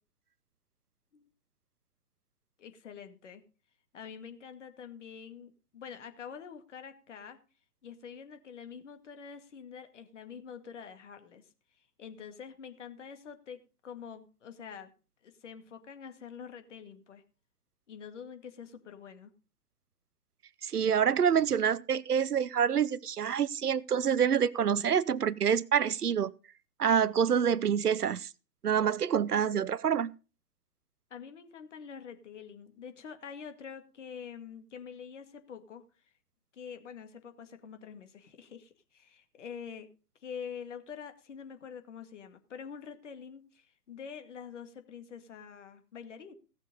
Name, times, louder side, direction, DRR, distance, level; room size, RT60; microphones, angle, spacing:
voice 1, 2.6-3.4 3.9-7.4 7.8-11.5 11.8-14.9 15.2-17.2 17.9-19.3 29.3-29.6 31.1-35.8 36.5-39.9 40.2-46.3, left 7 dB, 50° left, 2.2 m, -46 dB
voice 2, 20.6-26.3 26.8-28.3 28.6-30.1, right 8 dB, 75° right, 0.7 m, -27 dB
16.5 x 6.8 x 5.3 m
figure-of-eight pair, 125°, 46 cm